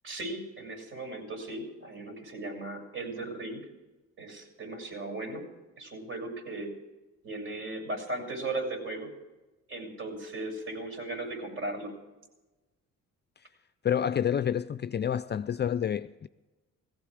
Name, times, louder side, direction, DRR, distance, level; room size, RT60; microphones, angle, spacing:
voice 1, 0.0-3.6 4.2-5.4 5.8-6.7 7.2-9.1 9.7-11.9, right 2 dB, 45° right, 7.1 m, -37 dB
voice 2, 13.8-16.3, left 9 dB, 35° left, 0.5 m, -28 dB
18.5 x 15.0 x 5.0 m
cardioid pair, 90°, 30 cm